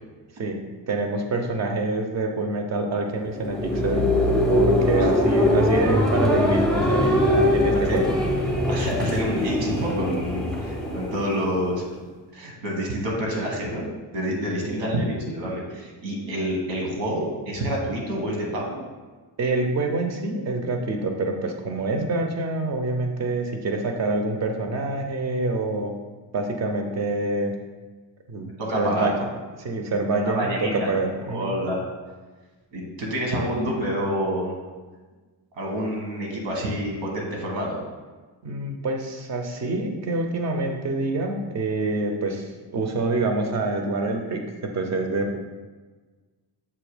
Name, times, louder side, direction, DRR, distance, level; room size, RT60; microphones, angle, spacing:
voice 1, 0.4-4.2 4.5-8.0 14.6-14.8 19.4-25.9 26.3-27.5 28.3-29.2 29.6-30.5 30.9-31.6 38.4-45.4, right 2 dB, 40° right, 4 dB, 0.7 m, -26 dB
sound 1, 3.2-11.9, left 1 dB, ahead, 0.7 m, -22 dB
voice 2, 8.7-11.8 12.3-13.9 14.1-18.8 28.6-29.3 30.2-31.0 31.3-31.8 32.7-34.6 35.6-37.8, equal, 85° right, -1 dB, 1.7 m, -28 dB
7.0 x 2.8 x 4.9 m, 1.3 s
cardioid pair, 165°, 44 cm